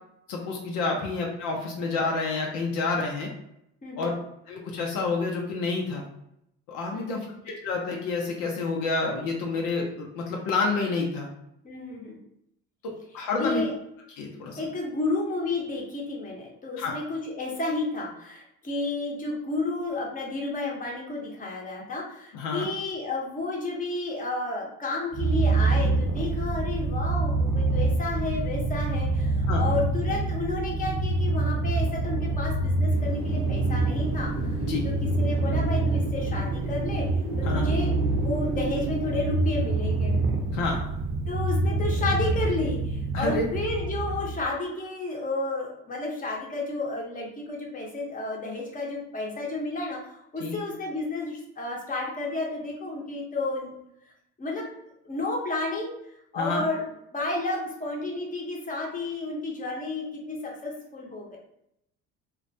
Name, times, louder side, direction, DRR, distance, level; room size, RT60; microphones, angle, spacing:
voice 1, 0.3-3.3 4.0-4.1 4.5-6.0 6.7-11.3 12.8-13.6 14.2-14.6 16.8-16.9 22.3-22.7 29.5-29.6 34.6-34.9 37.4-37.7 40.5-40.8 43.1-43.5 50.4-50.6 56.4-56.6, left 3 dB, 70° left, 0 dB, 0.6 m, -29 dB
voice 2, 3.8-4.1 6.9-7.4 11.6-12.2 13.4-13.7 14.6-34.6 34.8-37.1 37.4-40.1 41.3-53.7 54.4-54.7 55.0-56.8 57.1-61.4, left 2 dB, 25° left, -1 dB, 0.8 m, -31 dB
Purr, 25.1-44.4, right 2 dB, 35° right, 0.7 m, -26 dB
Wind, 32.9-41.6, right 3 dB, 75° right, 0.9 m, -36 dB
2.3 x 2.1 x 2.6 m, 0.78 s
hypercardioid pair, 70°, 34 cm